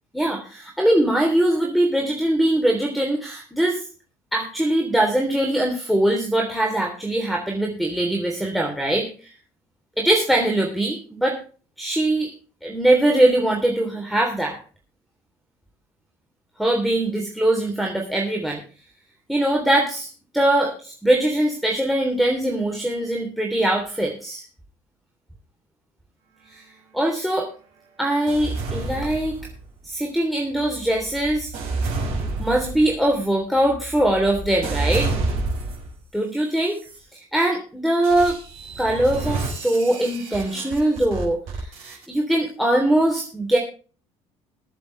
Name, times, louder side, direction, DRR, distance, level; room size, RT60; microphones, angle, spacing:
voice 1, 0.1-3.8 4.3-9.3 10.0-11.4 11.8-12.3 12.6-14.6 16.6-18.6 19.3-20.1 20.3-24.4 26.9-27.5 28.0-29.4 29.8-31.5 32.4-35.1 36.1-36.8 37.1-38.4 38.8-43.6, right 1 dB, ahead, 2 dB, 3.3 m, -22 dB
sound 1, 28.3-29.8 30.5-36.0 36.6-37.0 38.0-42.1, right 3 dB, 65° right, 5.9 m, -30 dB
22.0 x 7.9 x 3.3 m, 0.37 s
hypercardioid pair, 60°, 16 cm